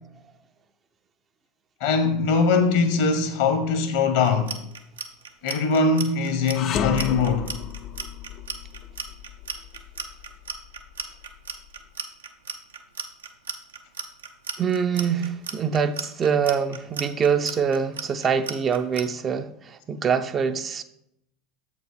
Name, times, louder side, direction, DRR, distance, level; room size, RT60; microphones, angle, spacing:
voice 1, 1.8-4.6 5.4-7.5, left 4 dB, 65° left, 1.2 m, -22 dB
Clock, 4.2-19.0, right 5 dB, 80° right, 0.7 m, -35 dB
sound 1, 6.5-11.8, left 8 dB, 45° left, 0.4 m, -33 dB
voice 2, 14.6-20.8, right 6 dB, 30° right, 0.5 m, -24 dB
7.7 x 5.1 x 5.0 m
figure-of-eight pair, 75°, 0 cm